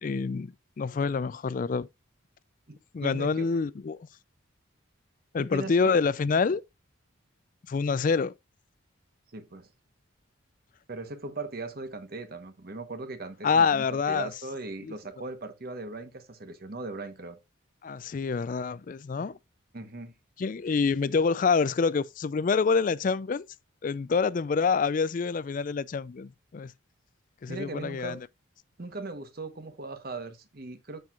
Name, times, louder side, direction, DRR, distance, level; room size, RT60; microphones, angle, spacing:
voice 1, 0.0-1.9 2.9-4.0 5.3-6.6 7.7-8.3 13.4-14.3 14.8-14.9 17.8-19.4 20.4-23.5 23.8-26.7 27.4-28.2, left 5 dB, 40° left, 0.3 m, -26 dB
voice 2, 2.7-3.5 5.4-5.9 9.3-9.7 10.9-17.4 19.7-20.1 27.5-28.2 28.8-31.0, right 3 dB, 45° right, 1.0 m, -39 dB
13.0 x 4.6 x 2.4 m
head